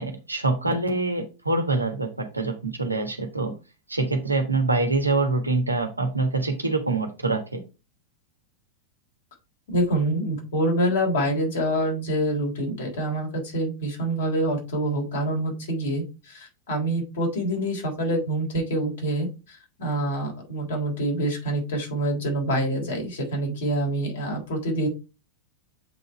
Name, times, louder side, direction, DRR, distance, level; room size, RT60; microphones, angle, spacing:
voice 1, 0.0-3.5 3.9-7.6, right 3 dB, 85° right, 5 dB, 1.3 m, -25 dB
voice 2, 9.7-24.9, right 1 dB, 60° left, 1 dB, 3.5 m, -26 dB
8.0 x 4.0 x 4.6 m, 0.30 s
figure-of-eight pair, 90°, 0 cm